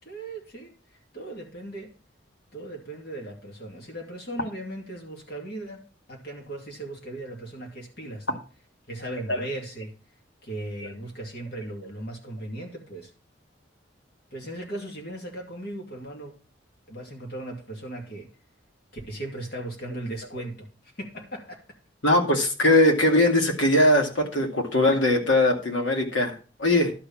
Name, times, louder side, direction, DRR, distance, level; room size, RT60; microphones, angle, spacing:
voice 1, 0.0-0.7 1.1-1.9 2.5-5.8 6.1-8.4 8.9-9.9 10.4-13.1 14.3-16.4 16.9-18.3 18.9-21.8, right 1 dB, 55° left, 1 dB, 2.5 m, -37 dB
voice 2, 22.0-26.9, left 1 dB, 90° left, 3 dB, 2.3 m, -21 dB
11.5 x 4.9 x 7.2 m, 0.36 s
head